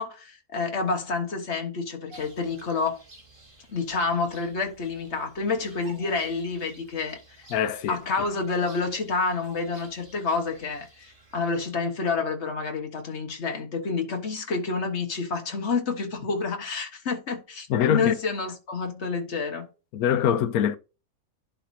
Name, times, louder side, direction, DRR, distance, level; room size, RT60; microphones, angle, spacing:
voice 1, 0.0-3.0 3.7-7.2 7.9-19.7, left 4 dB, 50° left, 1.6 m, -29 dB
Bird vocalization bird call bird song, 2.1-11.7, right 2 dB, 40° right, 2.2 m, -52 dB
voice 2, 7.5-8.0 17.7-18.1 19.9-20.8, left 9 dB, 85° left, 1.1 m, -23 dB
11.0 x 4.6 x 2.7 m
omnidirectional pair, 1.5 m